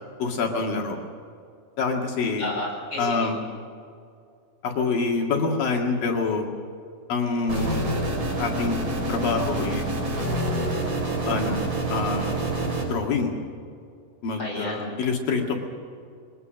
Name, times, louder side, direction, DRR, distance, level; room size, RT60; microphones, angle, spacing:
voice 1, 0.2-1.0 1.8-2.5 3.0-3.4 4.6-6.5 7.1-7.8 8.4-8.8 9.1-9.9 11.2-11.6 11.9-12.4 12.9-13.3 14.2-15.5, left 4 dB, 70° left, 1 dB, 3.7 m, -26 dB
voice 2, 2.4-3.3 14.4-15.0, left 1 dB, 20° left, -3 dB, 7.3 m, -31 dB
sound 1, 7.5-12.8, right 2 dB, 60° right, 6.8 m, -27 dB
21.5 x 21.0 x 6.5 m, 2.4 s
omnidirectional pair, 4.3 m